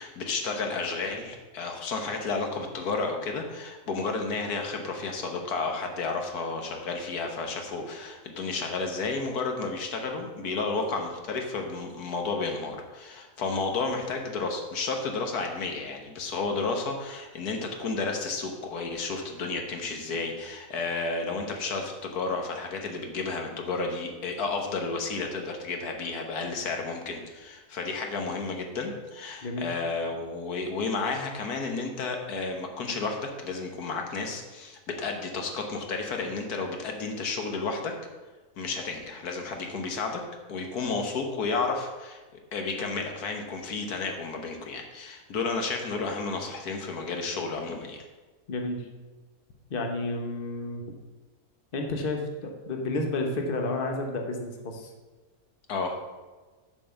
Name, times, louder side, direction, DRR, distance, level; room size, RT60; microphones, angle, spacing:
voice 1, 0.0-37.9 38.6-40.2 40.5-48.0 55.7-56.0, left 4 dB, 80° left, 3 dB, 1.6 m, -32 dB
voice 2, 48.5-48.9 49.7-50.8 51.7-54.9, left 2 dB, 40° left, 2 dB, 1.2 m, -31 dB
7.2 x 5.3 x 7.0 m, 1.3 s
omnidirectional pair, 1.6 m